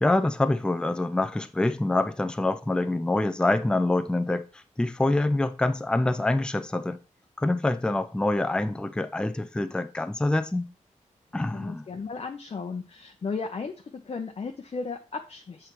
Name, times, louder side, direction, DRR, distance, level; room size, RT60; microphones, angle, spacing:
voice 1, 0.0-7.0 7.4-10.7 11.3-11.9, left 2 dB, 5° left, 0.4 m, -26 dB
voice 2, 11.5-15.7, left 4 dB, 50° left, 0.7 m, -35 dB
8.1 x 4.4 x 3.0 m
wide cardioid pair, 110°, 13 cm